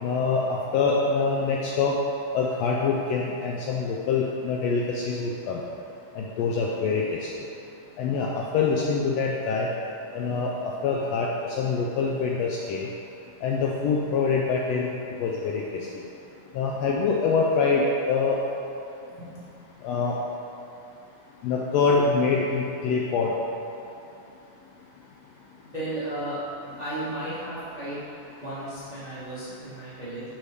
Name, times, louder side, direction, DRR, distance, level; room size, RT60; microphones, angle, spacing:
voice 1, 0.0-2.0 2.3-5.6 6.2-7.2 8.0-9.7 10.1-10.5 10.8-11.3 11.6-12.8 13.4-14.9 15.2-15.6 16.5-18.4 19.8-20.1 21.4-23.3, left 4 dB, 80° left, -3 dB, 1.5 m, -25 dB
voice 2, 19.1-19.5 25.7-26.4 26.8-28.1 28.4-30.2, right 1 dB, 55° right, -11 dB, 0.4 m, -34 dB
6.5 x 4.2 x 4.8 m, 2.7 s
omnidirectional pair, 3.4 m